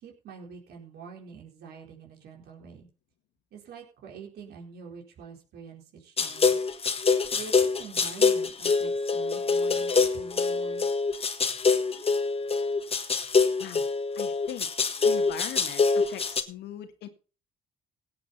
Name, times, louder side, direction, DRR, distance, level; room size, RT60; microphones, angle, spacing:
voice 1, 0.0-2.9 3.5-6.6 7.3-10.9, right 5 dB, 70° right, 0 dB, 4.4 m, -46 dB
sound 1, 6.2-16.4, left 4 dB, 35° left, 1.5 m, -25 dB
voice 2, 14.2-17.1, left 11 dB, 80° left, 9 dB, 1.8 m, -40 dB
17.0 x 8.1 x 4.3 m, 0.34 s
supercardioid pair, 65°, 17 cm